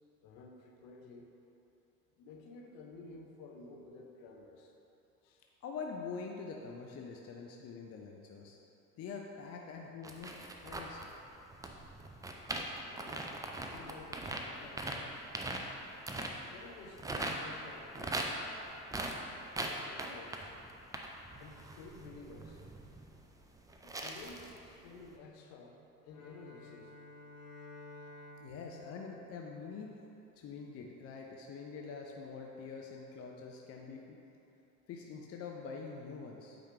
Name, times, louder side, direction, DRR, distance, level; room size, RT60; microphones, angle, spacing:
voice 1, 0.2-1.3 2.2-4.7 5.2-5.4 12.8-15.3 16.5-18.2 19.5-20.6 21.3-22.6 23.8-25.8 26.0-26.9, left 3 dB, 50° left, 2 dB, 1.0 m, -53 dB
voice 2, 5.6-8.6 9.0-10.3 10.6-11.0 28.4-29.9 30.4-34.2 34.9-36.6, left 5 dB, 30° left, 1 dB, 0.6 m, -45 dB
sound 1, 10.0-17.3 17.6-24.7 25.0-25.1, right 2 dB, 10° right, 0.4 m, -41 dB
Bowed string instrument, 26.1-30.3, left 2 dB, 80° left, 1.1 m, -53 dB
8.4 x 5.0 x 3.3 m, 2.9 s
figure-of-eight pair, 70°, 46 cm